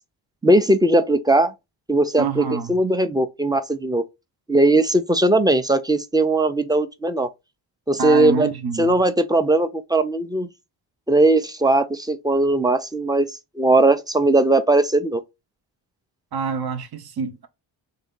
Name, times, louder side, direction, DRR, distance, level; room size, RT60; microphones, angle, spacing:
voice 1, 0.4-1.5 1.9-4.0 4.5-7.3 7.9-8.5 8.8-10.5 11.1-13.3 13.6-15.2, right 2 dB, 10° right, 0.5 m, -19 dB
voice 2, 2.2-2.7 8.0-9.0 16.3-17.5, right 5 dB, 50° right, 0.9 m, -26 dB
3.4 x 2.7 x 3.8 m
supercardioid pair, 50°, 50 cm